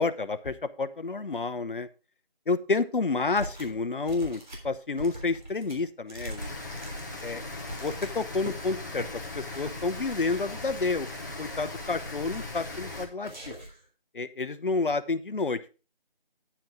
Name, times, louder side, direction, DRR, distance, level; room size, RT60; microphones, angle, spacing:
voice 1, 0.0-1.9 2.5-6.5 7.2-7.4 7.8-9.0 9.3-11.1 11.4-13.5 14.1-15.7, left 3 dB, 60° left, 11 dB, 0.9 m, -29 dB
sound 1, 3.3-3.8 4.0-8.6 8.9-9.1 9.4-9.8 10.3-11.0 11.4-12.0 12.5-12.9 13.2-13.8, right 1 dB, 50° right, 3.5 m, -43 dB
Rain, 6.4-13.0, left 2 dB, 20° left, 1.0 m, -39 dB
9.4 x 8.9 x 3.6 m, 0.33 s
figure-of-eight pair, 170°, 30 cm